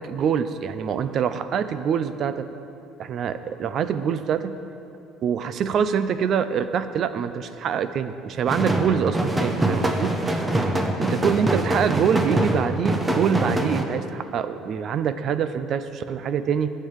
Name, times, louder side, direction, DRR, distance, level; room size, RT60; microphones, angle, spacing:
voice 1, 0.0-2.5 3.0-4.6 5.2-10.1 11.1-16.7, right 7 dB, 40° right, 12 dB, 0.5 m, -25 dB
sound 1, 8.5-13.8, right 1 dB, 10° right, 0.7 m, -24 dB
9.5 x 6.6 x 8.8 m, 2.7 s
cardioid pair, 160°, 0 cm